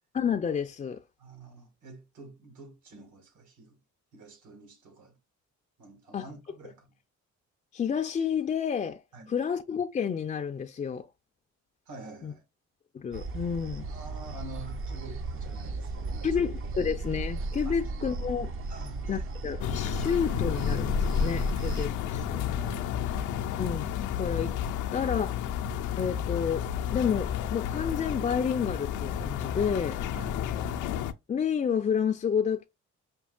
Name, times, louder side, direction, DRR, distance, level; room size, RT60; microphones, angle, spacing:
voice 1, 0.1-1.0 6.1-6.3 7.7-9.0 9.3-11.1 12.2-12.3 12.9-13.8 16.2-18.5 19.1-22.5 23.6-24.5 24.9-25.4 26.0-30.0 31.3-32.7, left 7 dB, 25° left, 0.4 m, -30 dB
voice 2, 1.2-3.8 4.1-5.2 5.8-7.0 9.1-9.3 11.9-12.4 13.9-16.4 17.7-17.8 18.7-19.3 22.6-23.2 30.1-30.4, right 2 dB, 80° right, 1.9 m, -47 dB
sound 1, 13.1-21.9, right 3 dB, 45° right, 0.6 m, -35 dB
sound 2, 15.5-31.0, right 3 dB, 60° right, 1.6 m, -46 dB
sound 3, 19.6-31.1, left 9 dB, 80° left, 0.5 m, -31 dB
5.2 x 2.7 x 2.3 m
cardioid pair, 90°, 30 cm